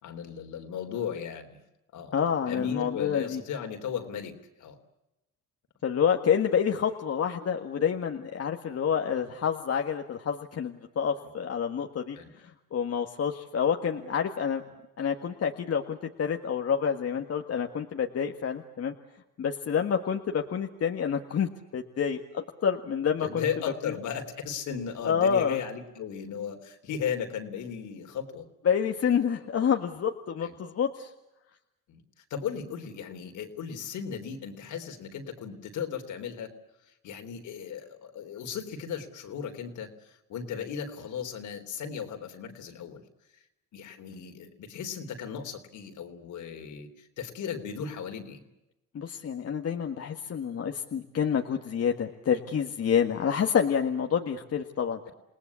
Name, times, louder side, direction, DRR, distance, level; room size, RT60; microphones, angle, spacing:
voice 1, 0.0-1.6 1.9-2.1 2.5-4.8 9.2-9.3 12.1-12.3 23.2-28.5 30.4-30.5 31.9-32.0 32.3-36.5 37.0-43.0 43.7-48.4, left 7 dB, 75° left, 5 dB, 3.7 m, -36 dB
voice 2, 2.1-3.4 5.8-14.6 15.0-18.9 19.4-23.4 23.9-24.0 25.0-25.6 28.7-31.1 48.9-55.0, left 7 dB, 55° left, 4 dB, 1.8 m, -28 dB
29.0 x 19.0 x 8.4 m, 0.93 s
cardioid pair, 90°, 30 cm